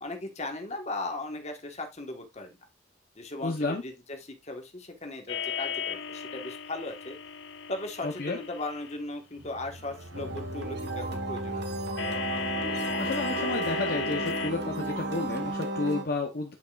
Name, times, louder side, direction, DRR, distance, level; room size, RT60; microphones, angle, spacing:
voice 1, 0.0-2.6 3.2-7.2 7.7-11.6, left 2 dB, 35° left, 4 dB, 1.4 m, -37 dB
voice 2, 3.4-3.8 8.0-8.4 13.0-16.5, left 3 dB, 50° left, 3 dB, 0.9 m, -31 dB
sound 1, 5.3-9.0 12.0-14.5, left 5 dB, 75° left, 1.0 m, -35 dB
sound 2, 9.4-15.7, right 1 dB, 85° right, 1.0 m, -44 dB
sound 3, 10.1-16.0, right 2 dB, 60° right, 1.4 m, -34 dB
9.3 x 5.4 x 2.4 m, 0.22 s
head